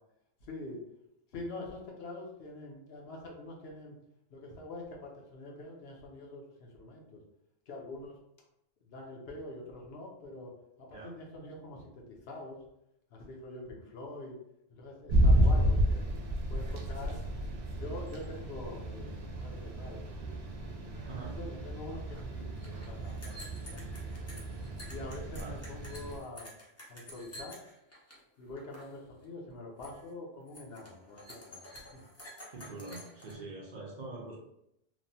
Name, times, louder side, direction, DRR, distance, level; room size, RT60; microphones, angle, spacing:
voice 1, 0.4-0.8 1.3-4.0 4.3-7.2 7.7-8.2 8.9-10.5 10.8-12.6 13.1-14.4 14.7-16.0 16.5-17.2 17.8-20.3 21.3-24.4 24.9-26.5 26.9-27.6 28.4-32.0, left 2 dB, 70° left, 0 dB, 0.9 m, -45 dB
sound 1, 15.1-26.2, equal, 80° right, 0.8 m, -31 dB
voice 2, 15.3-15.7 21.1-21.4 25.3-25.6 32.5-34.4, right 3 dB, 55° right, -3 dB, 0.6 m, -44 dB
sound 2, 22.1-22.2 22.5-28.2 28.5-28.9 29.2-29.5 29.8-30.1 30.5-33.3, equal, 20° left, 0.4 m, -50 dB
3.0 x 2.1 x 2.6 m, 0.79 s
omnidirectional pair, 1.1 m